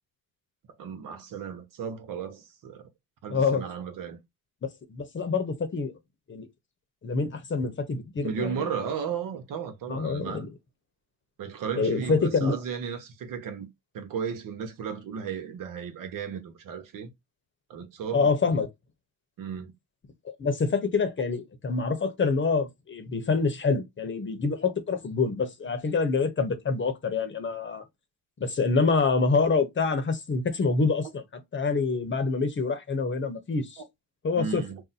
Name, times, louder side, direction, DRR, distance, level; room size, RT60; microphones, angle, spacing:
voice 1, 0.8-2.9 3.2-4.2 8.2-10.4 11.4-13.7 13.9-17.1 17.7-18.3 19.4-19.7 33.8-33.9 34.4-34.8, right 7 dB, 65° right, 0.9 m, -34 dB
voice 2, 3.3-3.6 4.9-5.9 6.3-6.5 7.0-8.7 9.9-10.5 11.8-12.5 18.1-18.7 20.4-27.8 28.4-31.2 31.5-33.8 34.2-34.6, left 4 dB, 35° left, 0.8 m, -26 dB
2.7 x 2.1 x 4.0 m
cardioid pair, 90°, 35 cm